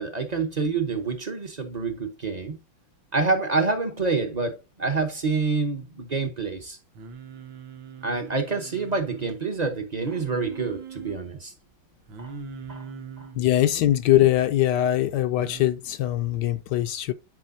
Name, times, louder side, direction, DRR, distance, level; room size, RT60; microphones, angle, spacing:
voice 1, 0.0-2.6 3.1-6.8 8.0-11.5 12.2-12.3 12.7-12.9 13.2-13.3, right 4 dB, 40° right, 0.5 m, -27 dB
Singing, 6.9-9.4 10.0-11.2 12.1-13.4 15.4-15.7, right 5 dB, 75° right, 1.8 m, -41 dB
voice 2, 13.3-17.1, left 13 dB, 75° left, 1.0 m, -22 dB
10.5 x 4.9 x 2.7 m
omnidirectional pair, 2.2 m